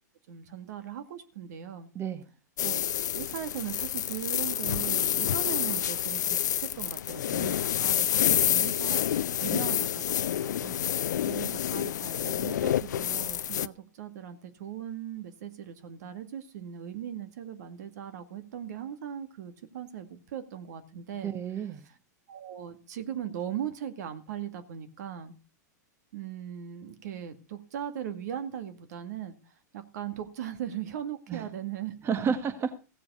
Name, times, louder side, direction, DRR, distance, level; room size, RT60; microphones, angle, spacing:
voice 1, 0.3-1.9 2.6-2.8 3.1-9.1 9.4-10.8 11.2-21.3 21.8-21.9 22.3-25.3 26.1-32.4, right 10 dB, 65° right, 1.9 m, -39 dB
sound 1, 2.6-13.7, left 10 dB, 80° left, 0.5 m, -28 dB
voice 2, 21.2-21.9 31.3-31.5 32.0-32.7, right 7 dB, 25° right, 1.3 m, -31 dB
16.0 x 7.7 x 5.5 m
hypercardioid pair, 110°, 10 cm